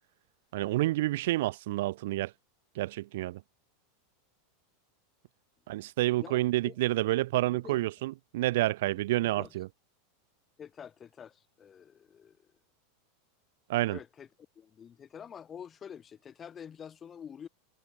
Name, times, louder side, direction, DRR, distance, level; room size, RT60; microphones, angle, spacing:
voice 1, 0.5-2.3 2.7-3.4 5.7-9.7 13.7-14.0, right 17 dB, 70° right, 2.3 m, -29 dB
voice 2, 6.2-6.8 7.5-7.8 9.2-9.5 10.6-12.5 13.9-14.3 14.6-17.5, left 8 dB, 25° left, 4.4 m, -47 dB
supercardioid pair, 125°, 0 cm